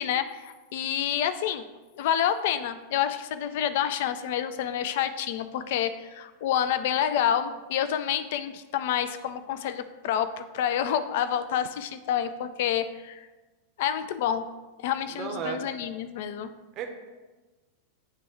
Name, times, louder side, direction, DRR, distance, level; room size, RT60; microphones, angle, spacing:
voice 1, 0.0-1.6 2.0-13.2 13.8-14.5 14.8-16.5, left 9 dB, 50° left, 11 dB, 0.3 m, -28 dB
voice 2, 15.1-15.6 16.8-16.9, right 7 dB, 35° right, 4 dB, 0.7 m, -33 dB
9.3 x 3.4 x 3.4 m, 1.2 s
figure-of-eight pair, 90°, 0 cm